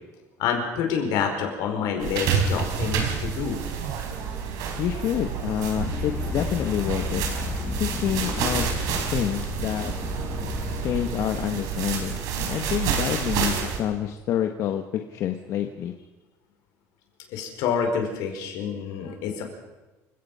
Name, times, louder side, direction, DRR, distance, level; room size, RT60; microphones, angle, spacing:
voice 1, 0.4-3.6 17.3-19.4, left 6 dB, 75° left, 3 dB, 5.0 m, -27 dB
sound 1, 2.0-13.8, right 7 dB, 70° right, 4.2 m, -29 dB
voice 2, 4.8-7.2 7.8-8.7 9.1-9.9 10.8-15.9, left 10 dB, 50° left, 6 dB, 1.3 m, -28 dB
sound 2, 5.7-11.1, left 6 dB, 20° left, 0.6 m, -33 dB
28.0 x 16.5 x 5.6 m, 1.1 s
cardioid pair, 160°, 6 cm